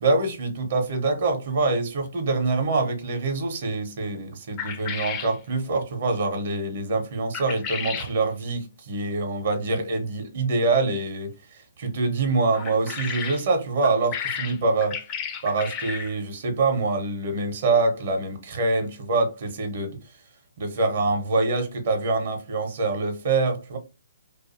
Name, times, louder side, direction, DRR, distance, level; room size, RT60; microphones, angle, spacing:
voice 1, 0.0-15.0 15.4-20.0 20.6-23.8, right 3 dB, 50° right, 0.7 m, -25 dB
sound 1, 4.6-5.4 7.3-8.1 12.5-13.4 13.8-16.1, left 7 dB, 25° left, 0.3 m, -33 dB
2.4 x 2.3 x 2.5 m
figure-of-eight pair, 140°, 0 cm